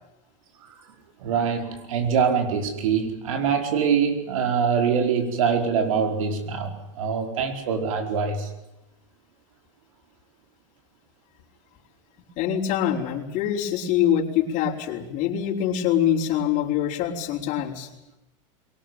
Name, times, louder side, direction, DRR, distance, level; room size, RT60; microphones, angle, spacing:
voice 1, 1.2-8.5, right 6 dB, 80° right, 5 dB, 4.7 m, -24 dB
voice 2, 12.4-17.9, left 10 dB, 50° left, -2 dB, 5.5 m, -24 dB
22.5 x 19.0 x 9.4 m, 0.91 s
supercardioid pair, 120°, 17 cm